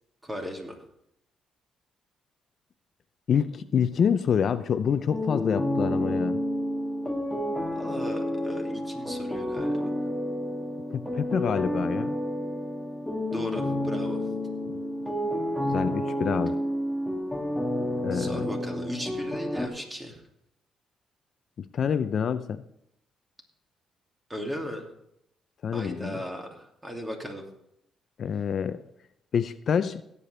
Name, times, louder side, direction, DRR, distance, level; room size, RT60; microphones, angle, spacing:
voice 1, 0.2-0.8 7.7-9.9 13.3-14.2 18.1-20.2 24.3-24.8 25.7-27.4, equal, 15° right, 2 dB, 2.6 m, -36 dB
voice 2, 3.3-6.4 10.9-12.2 14.7-14.8 15.7-16.6 18.0-18.5 21.6-22.6 25.6-26.2 28.2-28.8 29.3-30.0, left 7 dB, 55° left, 12 dB, 0.5 m, -27 dB
sound 1, 5.1-19.7, left 1 dB, 5° left, 1.5 m, -30 dB
18.0 x 8.3 x 3.4 m, 0.77 s
cardioid pair, 90°, 0 cm